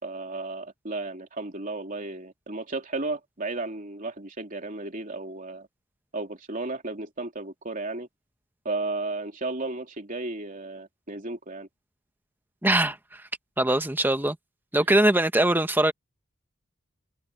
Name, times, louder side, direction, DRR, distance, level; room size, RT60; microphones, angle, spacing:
voice 1, 0.0-5.7 6.1-8.1 8.6-11.7 14.8-14.9, right 2 dB, 40° right, 3.1 m, -34 dB
voice 2, 12.6-13.0 13.6-14.4 14.7-15.9, right 1 dB, 10° right, 1.2 m, -21 dB
head